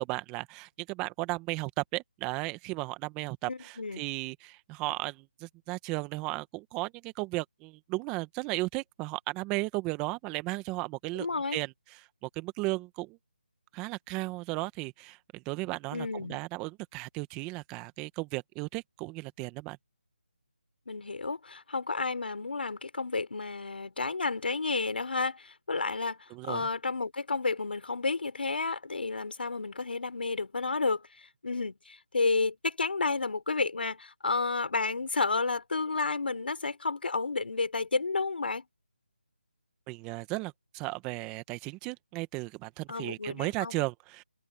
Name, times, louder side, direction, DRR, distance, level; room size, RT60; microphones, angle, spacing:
voice 1, 0.0-11.3 11.5-13.2 13.7-19.8 26.3-26.7 39.9-44.2, right 23 dB, 15° right, 1.4 m, -35 dB
voice 2, 3.5-4.0 11.1-11.6 15.9-16.4 20.9-31.0 31.4-38.6 42.9-43.8, left 3 dB, 65° left, 4.1 m, -31 dB
figure-of-eight pair, 160°, 6 cm